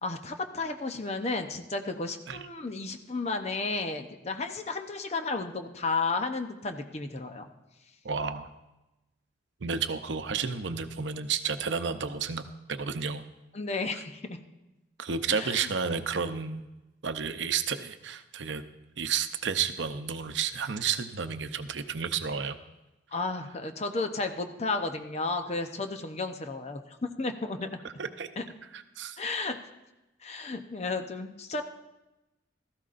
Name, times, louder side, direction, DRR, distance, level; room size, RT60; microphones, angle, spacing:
voice 1, 0.0-7.5 13.5-14.4 15.3-15.7 23.1-26.8 27.2-27.7 28.4-28.5 29.2-29.6 30.2-31.6, left 3 dB, 35° left, 6 dB, 0.8 m, -33 dB
voice 2, 8.0-8.5 9.6-13.2 15.0-16.6 17.0-18.6 19.0-22.6 28.0-28.3 28.7-29.2, right 6 dB, 80° right, 9 dB, 0.7 m, -31 dB
16.0 x 14.0 x 2.5 m, 1.0 s
head